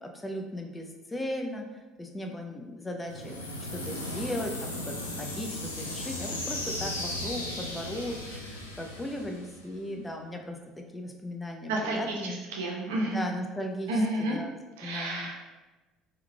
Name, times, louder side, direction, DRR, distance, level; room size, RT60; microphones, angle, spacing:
voice 1, 0.0-10.6 10.9-12.4 13.0-14.5 14.8-15.3, left 1 dB, 15° left, 2 dB, 0.5 m, -37 dB
sound 1, 3.0-9.9, left 1 dB, 90° left, 0.3 m, -36 dB
voice 2, 11.7-13.3 13.9-14.4 14.8-15.3, right 1 dB, 70° right, -2 dB, 0.5 m, -30 dB
3.5 x 3.0 x 2.2 m, 1.2 s
figure-of-eight pair, 60°, 0 cm